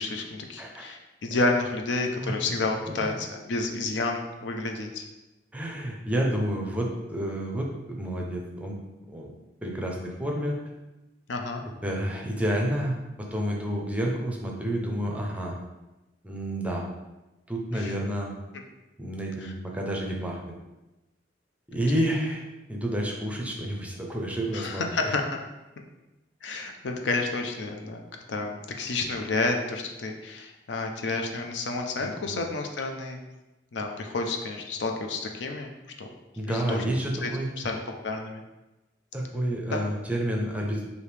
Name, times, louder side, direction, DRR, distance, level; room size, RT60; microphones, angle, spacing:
voice 1, 0.0-5.0 11.3-11.6 17.7-17.9 19.4-19.5 24.5-25.2 26.4-28.0 28.3-33.2 33.7-35.7 36.0-36.1 36.5-36.8 37.2-37.3 37.6-38.4 39.7-39.8, left 3 dB, 70° left, 3 dB, 0.5 m, -30 dB
voice 2, 2.2-2.6 2.9-3.2 5.5-8.8 9.1-9.3 9.6-10.6 11.8-15.6 16.2-16.8 17.5-18.3 19.0-20.4 21.7-22.4 22.7-25.1 32.0-32.4 36.4-37.5 39.1-40.8, right 1 dB, 10° right, 0 dB, 0.6 m, -30 dB
4.9 x 2.7 x 3.3 m, 1.0 s
head